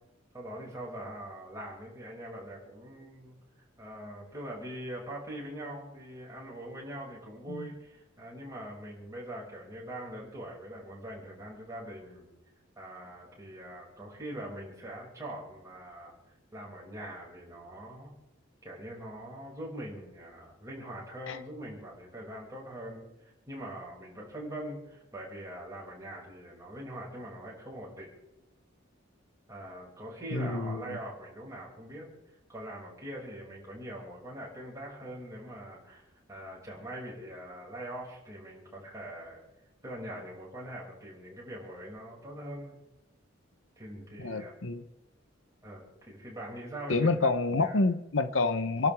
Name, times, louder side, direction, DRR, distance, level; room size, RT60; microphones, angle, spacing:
voice 1, 0.3-3.4 3.8-12.3 12.8-16.1 16.5-18.1 18.6-28.1 29.5-32.1 32.5-39.4 39.8-42.8 43.8-44.5 45.6-47.1 47.5-47.8, right 1 dB, 15° right, -4 dB, 6.3 m, -42 dB
voice 2, 30.3-31.0 44.2-44.8 46.9-48.9, left 3 dB, 70° left, 11 dB, 0.9 m, -28 dB
28.5 x 12.0 x 3.6 m, 0.89 s
head